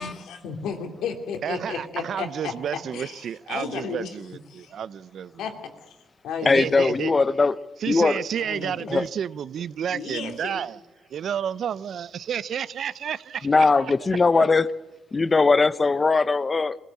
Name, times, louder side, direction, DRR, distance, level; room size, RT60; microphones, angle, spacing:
voice 1, 0.0-2.5 2.9-4.1 4.5-4.7 5.4-5.5 5.9-6.0 6.2-7.1 8.4-8.9 9.9-10.6, left 6 dB, 85° left, 2.9 m, -33 dB
voice 2, 1.4-5.4 6.5-7.1 7.8-10.8 11.1-13.9 14.4-14.5, right 8 dB, 60° right, 0.6 m, -31 dB
voice 3, 6.4-7.5 7.9-8.2 8.9-9.1 13.4-14.7 15.1-16.8, left 4 dB, 30° left, 0.8 m, -20 dB
22.5 x 16.0 x 8.6 m
cardioid pair, 90°, 0 cm